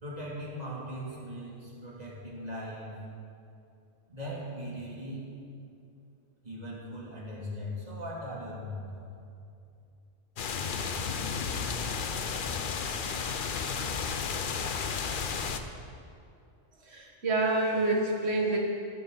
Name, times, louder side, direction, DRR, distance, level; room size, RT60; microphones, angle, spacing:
voice 1, 0.0-3.0 4.1-5.4 6.4-9.1, equal, 35° right, -6 dB, 3.0 m, -39 dB
sound 1, 10.4-15.6, left 5 dB, 50° left, 0.8 m, -32 dB
voice 2, 16.9-18.6, right 2 dB, 60° right, -1 dB, 2.1 m, -27 dB
14.0 x 12.5 x 4.0 m, 2.5 s
omnidirectional pair, 1.2 m